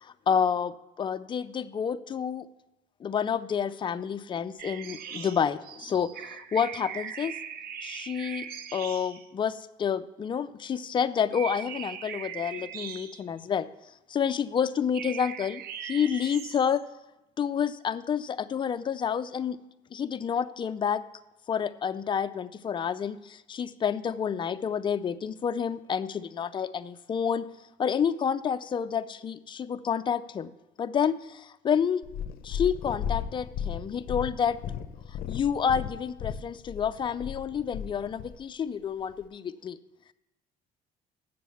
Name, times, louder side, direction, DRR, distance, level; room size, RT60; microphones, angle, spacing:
voice 1, 0.0-2.5 3.0-7.3 7.8-13.7 14.1-16.8 17.4-19.6 19.9-21.0 21.5-27.5 27.8-30.5 30.8-32.0 32.4-34.6 35.3-39.8, left 7 dB, 30° left, 11 dB, 0.4 m, -29 dB
sound 1, 4.6-9.3 10.8-11.0 11.3-13.5 14.9-16.8, right 8 dB, 65° right, 0.7 m, -40 dB
Purr, 32.0-38.4 39.1-39.2, left 8 dB, 60° left, 0.7 m, -35 dB
7.7 x 7.0 x 7.0 m, 0.95 s
cardioid pair, 110°, 17 cm